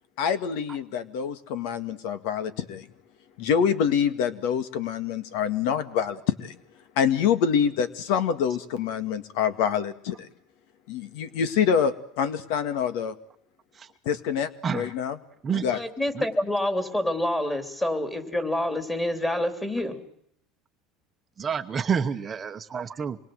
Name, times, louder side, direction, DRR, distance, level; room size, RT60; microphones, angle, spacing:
voice 1, 0.2-2.9 3.4-6.6 7.0-10.3 10.9-13.1 14.1-15.2 15.6-15.8, left 7 dB, 75° left, 12 dB, 2.0 m, -26 dB
voice 2, 14.6-14.9 15.4-15.7 16.1-16.3 21.4-23.2, right 6 dB, 20° right, 7 dB, 1.0 m, -28 dB
voice 3, 15.7-20.0, left 1 dB, 10° left, 8 dB, 3.2 m, -27 dB
27.0 x 22.5 x 7.8 m, 0.69 s
cardioid pair, 160°, 0 cm